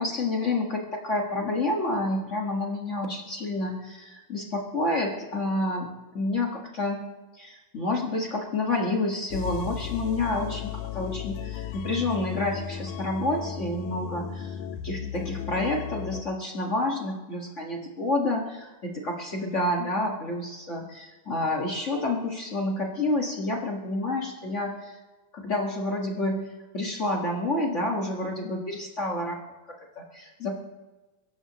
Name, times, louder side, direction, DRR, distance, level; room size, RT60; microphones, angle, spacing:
voice 1, 0.0-5.9 6.1-7.0 7.3-14.6 14.8-24.9 25.3-30.6, left 2 dB, 50° left, 0 dB, 0.8 m, -29 dB
sound 1, 9.3-16.2, left 9 dB, 75° left, 1.9 m, -35 dB
22.5 x 17.0 x 3.1 m, 1.2 s
omnidirectional pair, 4.1 m